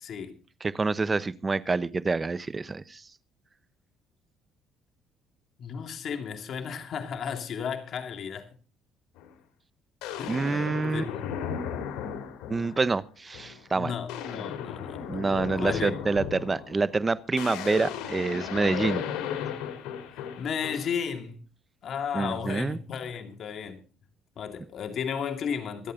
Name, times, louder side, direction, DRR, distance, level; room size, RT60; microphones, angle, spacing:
voice 1, 0.0-0.4 5.6-8.5 10.2-11.2 13.7-16.0 20.1-21.4 21.8-23.8 24.4-25.9, left 7 dB, 55° left, 2.5 m, -34 dB
voice 2, 0.6-3.0 10.3-11.0 12.5-13.9 15.1-19.0 22.1-22.8, right 3 dB, 25° right, 0.9 m, -27 dB
sound 1, 9.2-9.3 10.0-12.9 13.3-13.6 13.9-21.0, left 8 dB, 90° left, 2.9 m, -35 dB
25.5 x 8.5 x 3.8 m
cardioid pair, 105°, 0 cm